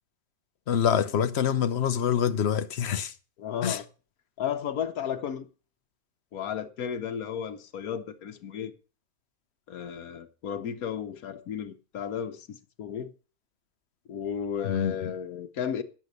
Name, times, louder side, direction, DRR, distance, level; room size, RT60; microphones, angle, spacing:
voice 1, 0.7-3.1 3.6-3.8 14.6-15.1, left 8 dB, 55° left, 1.0 m, -26 dB
voice 2, 3.4-3.9 4.4-5.5 6.3-8.7 9.7-13.1 14.1-15.8, left 8 dB, 85° left, 1.5 m, -33 dB
9.8 x 7.7 x 6.5 m
omnidirectional pair, 1.5 m